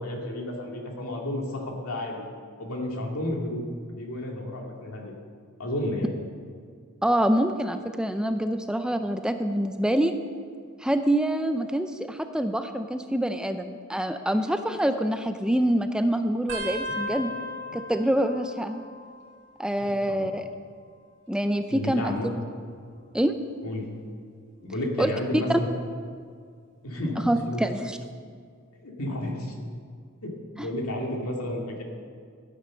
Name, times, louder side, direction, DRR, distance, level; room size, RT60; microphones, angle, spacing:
voice 1, 0.0-2.3 2.6-5.1 5.6-6.1 19.8-20.3 21.7-22.3 23.6-23.9 24.6-25.7 26.8-27.6 28.8-29.5 30.2-30.3 30.6-31.8, left 1 dB, 70° left, 0 dB, 2.4 m, -31 dB
voice 2, 7.0-10.1 10.8-17.3 17.7-18.8 19.6-20.5 21.3-22.1 23.1-23.3 25.0-25.1 25.5-25.6 27.3-28.0 30.6-30.7, right 1 dB, 5° right, 7 dB, 0.4 m, -26 dB
sound 1, 16.5-19.7 20.0-20.6 21.5-23.0 23.6-24.0 25.2-25.6 27.1-27.2, left 1 dB, 55° right, 2.3 m, -38 dB
14.0 x 9.8 x 6.3 m, 2.1 s
head